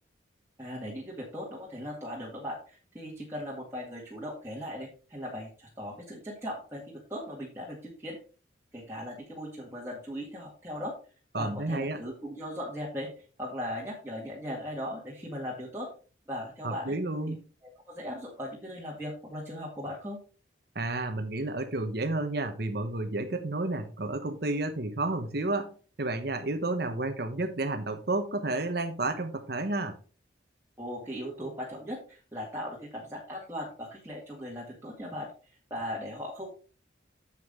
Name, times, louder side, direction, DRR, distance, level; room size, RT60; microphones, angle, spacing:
voice 1, 0.6-8.2 8.7-10.9 11.4-13.1 13.4-15.9 16.3-16.9 17.9-20.2 30.8-35.3 35.7-36.5, equal, 15° right, -4 dB, 1.8 m, -38 dB
voice 2, 11.3-12.0 16.6-17.4 20.7-25.7 26.0-30.0, right 2 dB, 55° right, 6 dB, 1.0 m, -31 dB
8.0 x 7.3 x 3.7 m, 0.38 s
head